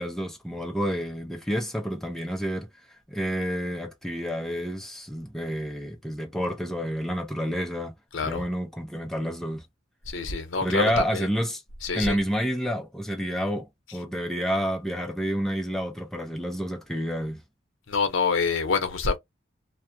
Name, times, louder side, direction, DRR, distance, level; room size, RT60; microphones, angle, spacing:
voice 1, 0.0-2.7 3.1-7.9 8.3-9.6 10.6-11.6 11.9-17.4, equal, ahead, 0.5 m, -29 dB
voice 2, 8.1-8.4 10.1-11.3 11.8-12.2 17.9-19.2, left 4 dB, 80° left, 0.8 m, -26 dB
2.3 x 2.3 x 2.6 m
head